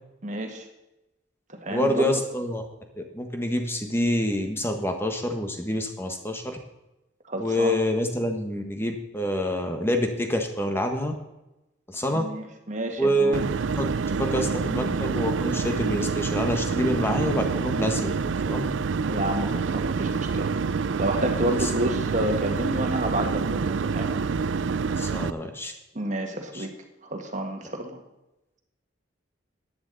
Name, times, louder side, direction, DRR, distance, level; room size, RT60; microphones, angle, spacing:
voice 1, 0.2-0.7 1.6-2.1 7.3-7.7 12.1-13.4 19.1-20.5 21.0-24.1 26.0-26.7 27.0-28.0, right 1 dB, 40° right, 3 dB, 1.8 m, -29 dB
voice 2, 1.7-2.6 3.0-6.6 7.4-11.1 11.9-12.3 13.0-13.4 13.7-18.1 18.5-18.7 21.6-21.7 25.0-25.7 26.5-26.6, equal, 15° left, 4 dB, 1.5 m, -27 dB
sound 1, 13.3-25.3, right 5 dB, 85° right, 0.5 m, -27 dB
14.5 x 10.0 x 4.1 m, 0.95 s
head